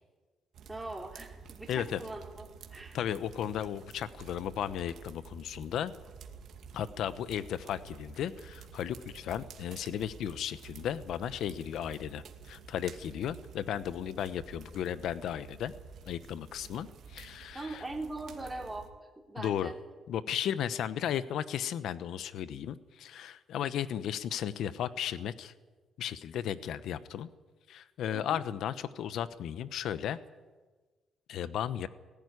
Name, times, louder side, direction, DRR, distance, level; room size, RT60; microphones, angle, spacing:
sound 1, 0.5-18.9, right 6 dB, 70° right, 2.2 m, -51 dB
voice 1, 0.7-3.0 17.5-18.9 19.3-19.7 28.1-28.4, right 2 dB, 10° right, 0 dB, 3.4 m, -41 dB
voice 2, 1.7-2.0 2.9-5.9 6.7-15.7 16.1-17.8 19.4-19.7 20.1-25.5 26.0-27.3 27.7-30.2 31.3-31.9, left 10 dB, 75° left, 14 dB, 0.9 m, -35 dB
18.5 x 16.0 x 9.7 m, 1.3 s
cardioid pair, 90°, 0 cm